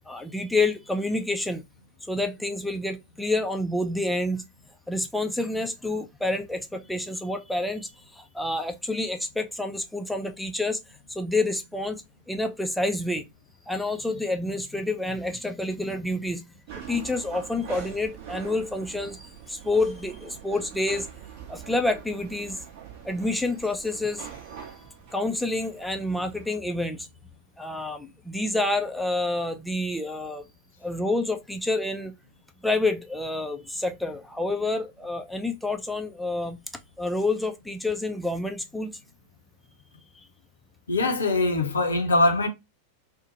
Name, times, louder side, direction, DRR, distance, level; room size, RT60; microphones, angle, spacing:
voice 1, 0.1-1.6 2.1-4.4 4.9-10.8 11.1-13.2 13.7-16.5 16.9-21.1 21.5-22.6 23.0-24.3 25.1-27.1 27.6-30.4 30.8-32.1 32.6-36.6 37.0-38.9, left 2 dB, ahead, 0.3 m, -28 dB
sound 1, 16.7-26.6, right 8 dB, 50° right, 0.7 m, -43 dB
voice 2, 40.9-42.5, left 2 dB, 70° left, 0.6 m, -22 dB
2.7 x 2.1 x 2.7 m
figure-of-eight pair, 90°, 0 cm